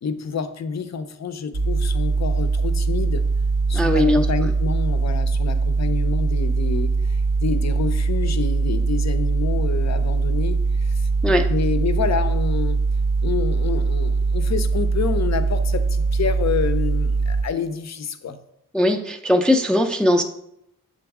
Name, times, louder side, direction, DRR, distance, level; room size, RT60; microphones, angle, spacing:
voice 1, 0.0-3.3 3.7-11.1 11.5-12.8 13.2-18.4, left 6 dB, 50° left, 11 dB, 0.5 m, -28 dB
sound 1, 1.5-17.4, right 4 dB, 70° right, 0.8 m, -21 dB
voice 2, 3.7-4.3 11.2-11.5 18.7-20.2, left 1 dB, 5° left, 4 dB, 0.4 m, -19 dB
7.0 x 4.0 x 3.5 m, 0.79 s
wide cardioid pair, 80°, 34 cm